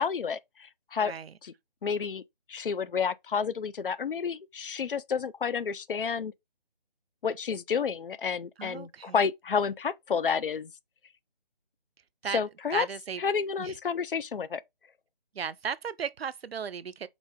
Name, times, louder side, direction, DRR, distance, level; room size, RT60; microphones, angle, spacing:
voice 1, 0.0-1.1 1.4-1.5 1.8-2.2 2.5-6.3 7.2-10.7 12.3-12.9 13.2-14.6, left 6 dB, 65° left, 0.4 m, -30 dB
voice 2, 1.0-1.3 8.6-9.2 12.2-12.4 12.7-13.2 13.6-13.8 15.3-17.1, right 7 dB, 85° right, 0.5 m, -35 dB
3.7 x 3.0 x 3.4 m
figure-of-eight pair, 175°, 30 cm